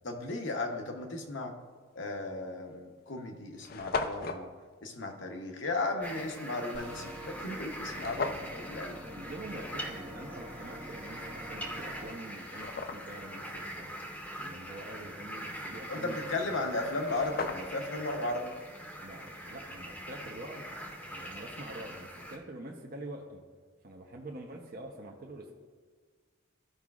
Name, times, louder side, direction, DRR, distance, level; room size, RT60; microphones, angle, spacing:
voice 1, 0.0-1.5 2.0-4.5 4.8-9.0 15.9-18.5, left 2 dB, 65° left, 3 dB, 0.9 m, -35 dB
sound 1, 2.1-2.3 3.0-3.1 3.3-3.4 3.6-4.4 7.9-8.5 11.5-11.6 12.1-13.3 16.6-16.7 16.9-17.9, left 4 dB, 50° left, 0.4 m, -36 dB
sound 2, 6.0-22.4, equal, 10° left, 0.8 m, -43 dB
sound 3, 6.7-12.1, equal, 25° right, 1.1 m, -46 dB
voice 2, 9.1-13.9 14.4-16.6 19.0-20.6 21.1-23.4 23.8-25.5, right 1 dB, 50° right, 0 dB, 0.7 m, -45 dB
14.0 x 5.0 x 2.4 m, 1.5 s
head